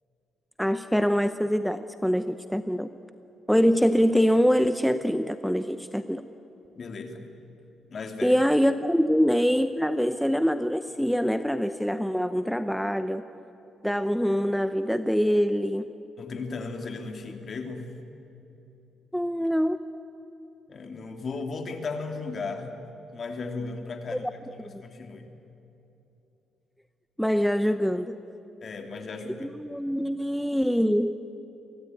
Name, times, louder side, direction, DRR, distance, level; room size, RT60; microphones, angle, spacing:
voice 1, 0.6-2.9 3.5-6.2 8.2-13.2 13.8-15.9 19.1-19.8 24.6-24.8 27.2-28.2 29.4-31.3, equal, ahead, 10 dB, 0.7 m, -24 dB
voice 2, 6.8-7.3 7.9-8.4 16.2-17.9 20.7-24.3 24.8-25.3 28.6-29.5, left 4 dB, 45° left, 5 dB, 2.8 m, -36 dB
23.5 x 17.0 x 9.4 m, 3.0 s
cardioid pair, 90°, 0 cm